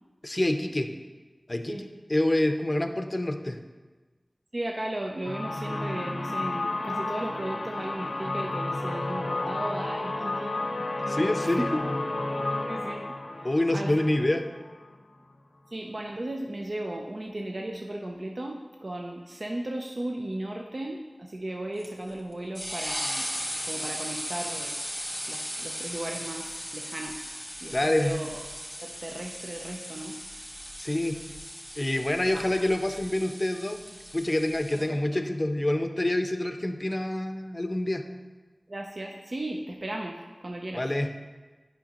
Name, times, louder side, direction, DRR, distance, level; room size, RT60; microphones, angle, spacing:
voice 1, 0.2-0.9 1.5-1.8 2.1-3.6 11.1-11.7 13.4-14.4 27.7-28.2 30.8-31.2 31.8-33.8 34.1-38.0 40.7-41.1, left 1 dB, 35° left, 6 dB, 0.5 m, -27 dB
voice 2, 4.5-10.6 11.0-11.7 12.7-14.3 15.7-23.3 23.6-24.8 25.3-27.3 27.6-28.4 28.8-30.2 32.3-32.5 34.7-35.2 38.7-40.8, right 1 dB, 55° right, 1 dB, 0.5 m, -36 dB
sound 1, 5.2-15.0, left 2 dB, 85° left, 0.6 m, -32 dB
sound 2, 21.8-34.8, equal, 5° right, 1.6 m, -37 dB
9.8 x 5.7 x 2.9 m, 1.3 s
wide cardioid pair, 60°, 0 cm